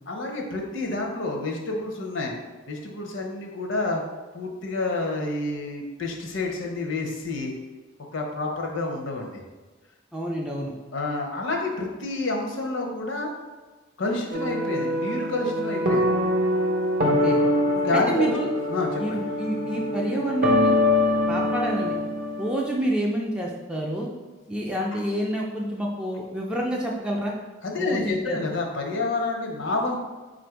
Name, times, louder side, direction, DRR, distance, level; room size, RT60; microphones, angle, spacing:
voice 1, 0.1-2.3 2.7-4.0 4.3-7.5 8.1-9.4 10.9-13.3 14.0-16.2 17.8-18.3 18.7-19.2 24.9-25.0 27.6-30.0, left 2 dB, 65° left, 1 dB, 0.7 m, -29 dB
voice 2, 10.1-10.7 17.0-17.4 17.9-18.5 19.0-20.8 21.3-21.9 22.4-24.1 24.5-27.3 27.8-28.4, right 1 dB, 5° right, -2 dB, 0.4 m, -28 dB
sound 1, 14.3-22.7, left 1 dB, 40° right, 0.6 m, -24 dB
4.1 x 2.5 x 4.5 m, 1.3 s
head